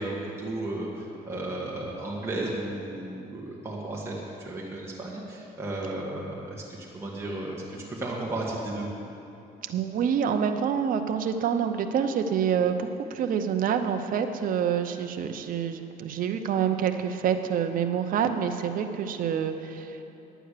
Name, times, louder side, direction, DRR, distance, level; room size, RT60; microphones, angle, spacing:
voice 1, 0.0-8.9, right 2 dB, 15° right, -5 dB, 1.8 m, -34 dB
voice 2, 9.6-20.0, right 7 dB, 55° right, 6 dB, 0.8 m, -27 dB
10.0 x 9.1 x 6.7 m, 2.9 s
cardioid pair, 110°, 17 cm